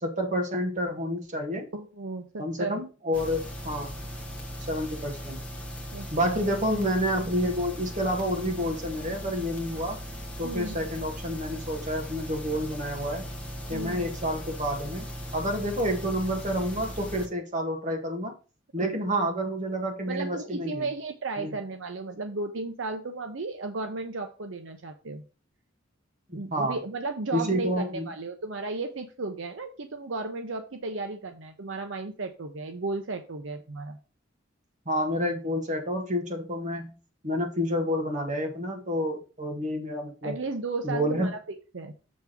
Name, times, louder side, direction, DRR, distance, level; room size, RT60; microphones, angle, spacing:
voice 1, 0.0-1.7 2.4-3.9 4.7-5.4 6.1-10.0 10.4-13.2 13.7-15.1 15.3-18.3 18.7-20.9 21.4-21.5 26.3-26.8 27.3-28.1 34.8-36.9 37.2-40.4 40.8-41.3, equal, 40° right, 3 dB, 1.7 m, -29 dB
voice 2, 1.7-2.8 5.9-6.5 10.4-10.8 13.7-14.1 18.8-19.0 20.1-25.2 26.3-34.0 40.2-41.4 41.7-41.9, right 3 dB, 75° right, 6 dB, 0.7 m, -34 dB
sound 1, 3.1-17.3, equal, 5° left, 1.3 m, -38 dB
7.4 x 3.5 x 6.0 m, 0.34 s
head